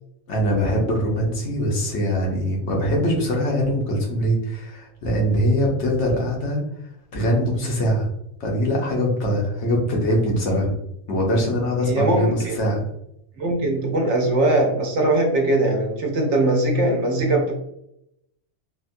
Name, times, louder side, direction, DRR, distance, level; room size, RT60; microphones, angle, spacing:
voice 1, 0.3-6.6 7.1-8.1 8.4-10.7 11.1-12.9, equal, 75° left, -1 dB, 1.1 m, -22 dB
voice 2, 11.8-12.6 13.4-17.5, right 1 dB, 75° right, 1 dB, 1.1 m, -21 dB
3.3 x 2.2 x 2.6 m, 0.78 s
omnidirectional pair, 1.2 m